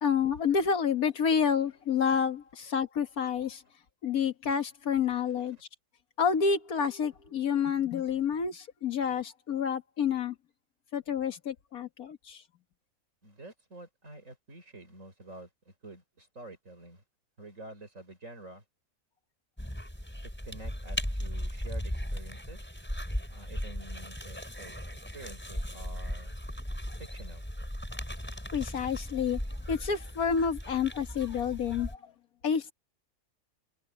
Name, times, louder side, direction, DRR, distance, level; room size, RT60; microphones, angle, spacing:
voice 1, 0.0-3.6 4.0-5.6 6.2-10.4 10.9-12.4 28.5-29.4 29.7-32.1 32.4-32.7, left 6 dB, 70° left, 1.8 m, -29 dB
voice 2, 5.1-5.6 13.2-17.0 17.4-18.6 20.5-22.6 23.3-24.8 25.1-26.3 27.0-27.4 28.3-28.5, right 2 dB, 55° right, 6.0 m, -48 dB
sound 1, 19.6-31.9, equal, 5° left, 4.9 m, -37 dB
omnidirectional pair, 1.6 m